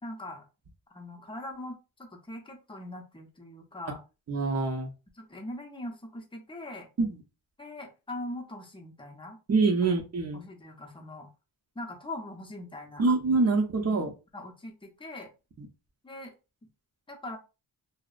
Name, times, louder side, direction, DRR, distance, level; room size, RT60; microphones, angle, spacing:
voice 1, 0.0-0.4 0.9-4.0 5.1-6.9 7.6-9.4 9.8-9.9 10.3-11.3 11.7-13.1 13.5-13.9 14.3-15.3 16.0-16.3 17.1-17.4, left 1 dB, 15° left, 2 dB, 0.7 m, -41 dB
voice 2, 4.3-4.9 7.0-7.1 9.5-10.4 13.0-14.1 15.6-15.7, right 3 dB, 40° right, 3 dB, 0.7 m, -25 dB
2.6 x 2.0 x 2.4 m, 0.29 s
cardioid pair, 90°, 40 cm